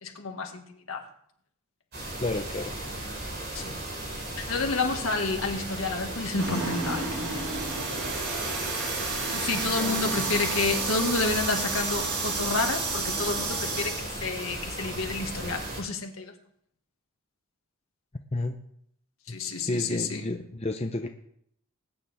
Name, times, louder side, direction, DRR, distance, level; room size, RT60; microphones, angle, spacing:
voice 1, 0.0-1.0 3.6-3.8 4.3-7.1 9.3-16.3 19.3-20.2, left 3 dB, 65° left, 3 dB, 1.9 m, -30 dB
sound 1, 1.9-15.8, right 1 dB, 45° right, 5.3 m, -36 dB
voice 2, 2.2-2.7 9.8-10.2 18.3-18.6 19.3-21.1, left 2 dB, 30° left, 4 dB, 0.6 m, -31 dB
sound 2, 6.4-14.1, right 3 dB, 85° right, 3.8 m, -31 dB
20.5 x 9.4 x 3.5 m, 0.69 s
head